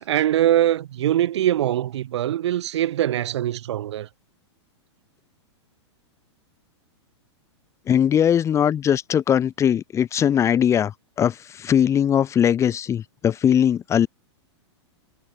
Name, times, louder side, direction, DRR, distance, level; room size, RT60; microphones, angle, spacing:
voice 1, 0.0-4.1, right 12 dB, 70° right, 4.4 m, -22 dB
voice 2, 7.9-10.9 11.2-14.1, left 9 dB, 20° left, 3.6 m, -20 dB
hypercardioid pair, 150°, 15 cm